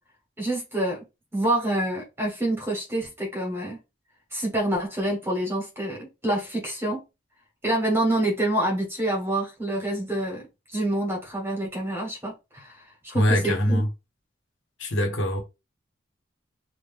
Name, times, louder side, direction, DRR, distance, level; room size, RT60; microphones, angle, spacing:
voice 1, 0.4-1.0 1.3-3.8 4.3-7.0 7.6-10.4 10.7-13.8, right 1 dB, 10° right, 1.3 m, -27 dB
voice 2, 13.1-13.9 14.8-15.4, left 1 dB, 90° left, 1.1 m, -23 dB
3.0 x 2.5 x 3.5 m
head